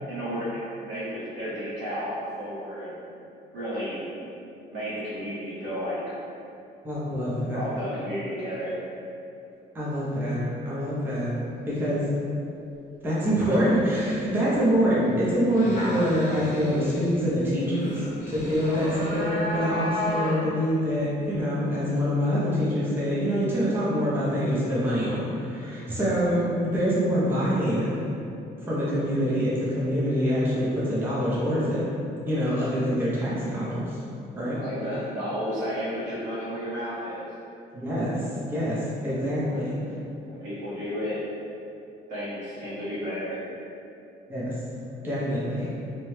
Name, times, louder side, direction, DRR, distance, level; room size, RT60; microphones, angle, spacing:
voice 1, 0.1-3.0 3.5-4.1 4.7-6.2 7.4-8.8 26.0-26.4 34.6-37.2 38.9-39.0 39.5-39.7 40.3-41.2 42.1-43.4, equal, 85° right, -9 dB, 1.1 m, -32 dB
voice 2, 6.8-7.6 9.7-10.4 10.7-11.3 11.6-12.0 13.0-28.0 28.7-31.9 32.3-34.0 34.4-34.6 37.7-38.2 38.5-39.8 44.3-44.5 45.0-45.7, equal, 10° right, -8 dB, 0.5 m, -25 dB
sound 1, 15.5-19.4 20.0-20.1, left 1 dB, 45° left, 0.4 m, -39 dB
sound 2, 18.4-20.7, left 1 dB, 55° right, 0.8 m, -30 dB
2.7 x 2.1 x 3.1 m, 2.7 s
cardioid pair, 160°, 18 cm